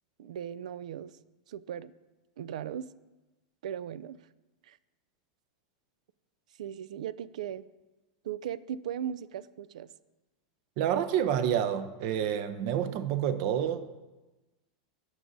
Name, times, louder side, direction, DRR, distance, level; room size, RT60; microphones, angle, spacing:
voice 1, 0.2-1.2 1.5-1.9 2.4-2.9 3.6-4.2 4.6-4.8 6.6-7.7 8.2-9.9, right 9 dB, 90° right, 18 dB, 0.3 m, -38 dB
voice 2, 10.8-13.9, right 9 dB, 40° right, 12 dB, 0.6 m, -28 dB
14.5 x 6.2 x 2.7 m, 1.1 s
supercardioid pair, 175°, 4 cm